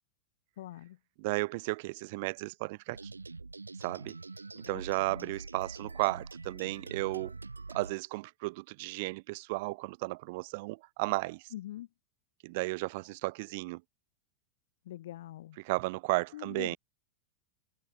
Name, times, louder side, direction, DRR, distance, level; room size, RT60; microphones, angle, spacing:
voice 1, 0.6-1.0 4.6-4.8 5.1-5.3 11.5-11.9 14.8-15.6 16.3-16.8, left 14 dB, 55° left, 1.3 m, -43 dB
voice 2, 1.2-3.1 3.8-4.2 4.7-7.3 7.7-11.4 12.4-13.8 15.6-16.8, right 24 dB, 50° right, 1.4 m, -34 dB
sound 1, 2.9-7.9, right 3 dB, 80° right, 1.7 m, -45 dB
figure-of-eight pair, 90°, 0 cm